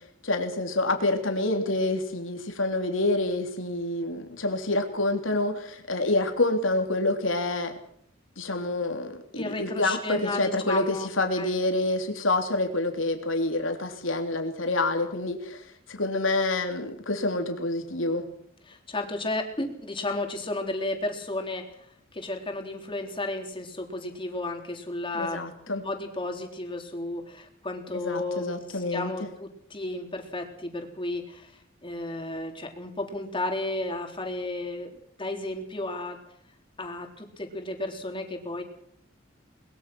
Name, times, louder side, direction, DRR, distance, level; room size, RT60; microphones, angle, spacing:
voice 1, 0.2-7.7 8.4-18.3 25.1-25.8 27.9-29.3, left 2 dB, 85° left, 4 dB, 3.3 m, -27 dB
voice 2, 9.4-11.1 11.4-11.5 18.7-21.9 22.1-25.4 25.7-31.5 31.8-34.9 35.2-36.2 36.8-38.6, left 2 dB, 25° left, 4 dB, 3.8 m, -33 dB
22.0 x 21.0 x 6.2 m, 0.67 s
head